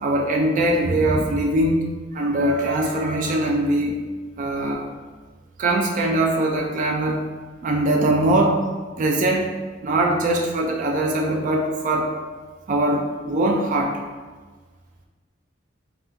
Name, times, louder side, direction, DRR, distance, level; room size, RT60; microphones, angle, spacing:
voice 1, 0.0-1.8 2.1-4.0 4.4-4.9 5.6-7.2 7.6-8.6 9.0-9.5 9.8-12.2 12.7-14.0, right 1 dB, 40° right, 1 dB, 0.3 m, -21 dB
3.5 x 2.3 x 2.7 m, 1.4 s
head